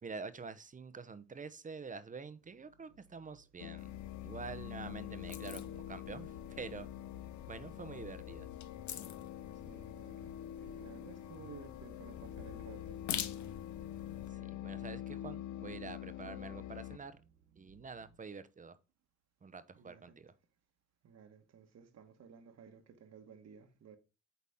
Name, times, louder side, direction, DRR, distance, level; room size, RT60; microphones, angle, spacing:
voice 1, 0.0-3.9 4.2-6.3 6.6-6.9 7.5-8.5 14.6-17.2 17.6-18.8 19.4-20.3, right 5 dB, 25° right, 0.7 m, -47 dB
sound 1, 2.4-18.2, right 5 dB, 75° right, 1.2 m, -64 dB
sound 2, 3.6-17.0, left 12 dB, 85° left, 0.5 m, -46 dB
sound 3, 3.8-14.3, left 10 dB, 70° left, 0.8 m, -47 dB
voice 2, 9.5-13.0 19.7-20.2 21.0-24.0, right 6 dB, 60° right, 1.3 m, -55 dB
8.3 x 4.1 x 3.6 m
cardioid pair, 90°, 30 cm